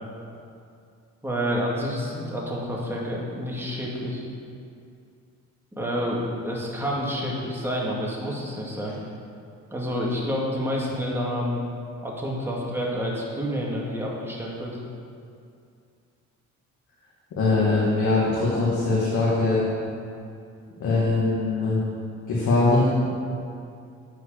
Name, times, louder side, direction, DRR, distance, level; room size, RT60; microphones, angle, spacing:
voice 1, 1.2-4.2 5.7-8.9 9.7-11.7 12.0-14.8, equal, 10° right, -4 dB, 2.2 m, -28 dB
voice 2, 17.4-19.6 20.8-21.8 22.3-23.1, left 3 dB, 75° left, -7 dB, 2.0 m, -22 dB
9.5 x 4.8 x 6.9 m, 2.4 s
cardioid pair, 90°, 30 cm